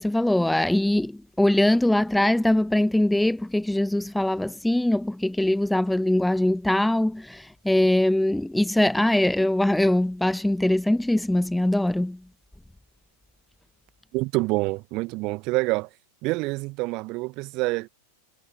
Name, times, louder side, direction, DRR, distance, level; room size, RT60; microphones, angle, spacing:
voice 1, 0.0-12.2, left 1 dB, 5° left, 1.5 m, -22 dB
voice 2, 14.1-15.9 16.2-17.9, right 24 dB, 40° right, 1.3 m, -27 dB
figure-of-eight pair, 90°, 0 cm